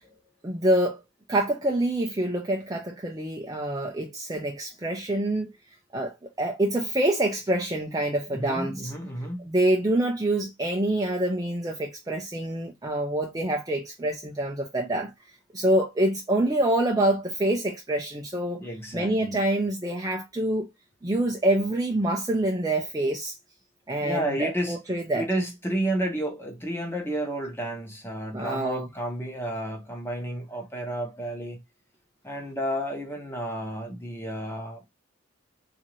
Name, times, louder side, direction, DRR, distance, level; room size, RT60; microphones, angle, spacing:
voice 1, 0.4-1.0 1.3-5.5 5.9-8.9 9.5-15.1 15.5-18.6 18.9-20.7 21.0-23.4 23.9-25.3 28.3-28.9, right 1 dB, 15° right, 0.5 m, -26 dB
voice 2, 8.3-9.5 18.5-19.4 24.0-24.8 25.1-31.6 32.2-34.9, right 1 dB, 10° left, 1.0 m, -31 dB
3.8 x 2.7 x 3.0 m
head